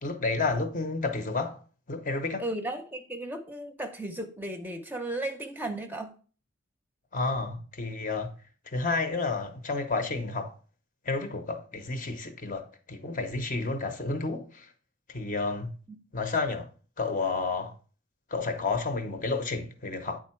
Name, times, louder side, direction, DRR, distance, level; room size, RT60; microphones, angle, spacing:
voice 1, 0.0-1.6 1.9-2.5 7.1-8.3 8.7-10.5 11.0-14.7 15.1-15.7 16.1-16.7 17.0-17.7 18.3-20.2, left 3 dB, 40° left, 0.8 m, -31 dB
voice 2, 2.4-6.1, right 1 dB, 10° right, 0.6 m, -35 dB
9.2 x 3.6 x 4.4 m
head